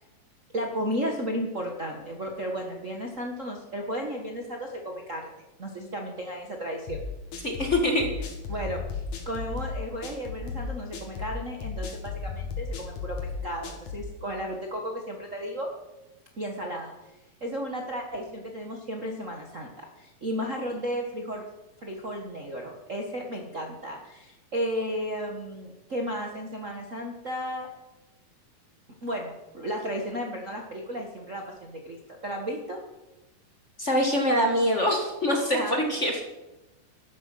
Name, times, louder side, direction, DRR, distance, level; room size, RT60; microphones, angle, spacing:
voice 1, 0.5-5.3 5.6-7.0 8.5-15.7 16.4-16.9 17.4-21.4 21.8-27.7 29.0-32.8 35.5-35.8 36.1-36.2, equal, 85° right, 0 dB, 0.6 m, -34 dB
sound 1, 6.9-14.1, left 5 dB, 65° left, 3.2 m, -35 dB
voice 2, 7.4-8.1 33.8-36.2, equal, 30° left, 2 dB, 1.3 m, -24 dB
12.5 x 11.5 x 6.2 m, 1.0 s
omnidirectional pair, 3.9 m